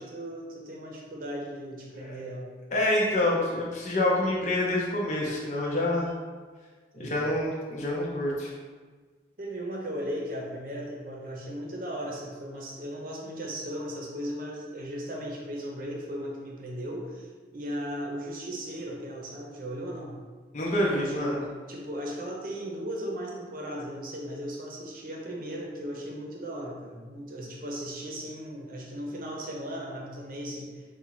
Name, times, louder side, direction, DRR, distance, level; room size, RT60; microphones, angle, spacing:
voice 1, 0.0-2.5 7.0-7.3 9.4-20.2 20.9-21.3 21.7-30.8, equal, 50° right, -1 dB, 0.8 m, -37 dB
voice 2, 2.7-6.1 6.9-8.5 20.5-21.4, left 1 dB, 40° left, -4 dB, 0.5 m, -27 dB
4.0 x 2.4 x 4.6 m, 1.5 s
head